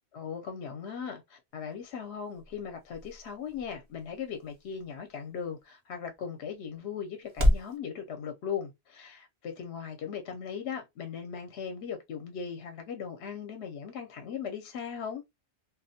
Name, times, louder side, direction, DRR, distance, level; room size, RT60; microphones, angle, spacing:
voice 1, 0.1-15.2, left 7 dB, 75° left, 0.8 m, -38 dB
sound 1, 1.5-7.8, left 1 dB, 35° right, 0.5 m, -34 dB
2.3 x 2.0 x 2.6 m
omnidirectional pair, 1.1 m